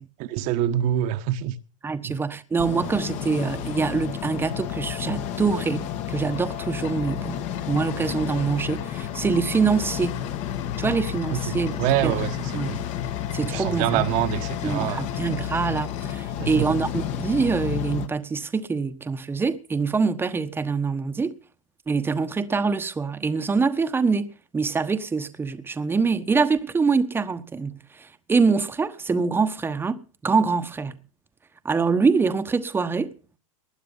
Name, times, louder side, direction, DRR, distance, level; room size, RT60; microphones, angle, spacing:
voice 1, 0.2-1.5 2.0-2.2 11.3-12.8 13.5-15.1 16.4-16.7, right 12 dB, 50° right, 1.4 m, -26 dB
voice 2, 1.8-10.2 10.8-12.1 12.5-12.8 13.3-14.1 14.6-21.3 21.9-31.0 31.6-33.1, right 4 dB, 15° right, 1.2 m, -25 dB
sound 1, 2.6-18.1, left 10 dB, 45° left, 1.6 m, -31 dB
sound 2, 6.1-16.2, left 12 dB, 65° left, 5.7 m, -45 dB
20.0 x 10.0 x 5.5 m
hypercardioid pair, 120°, 17 cm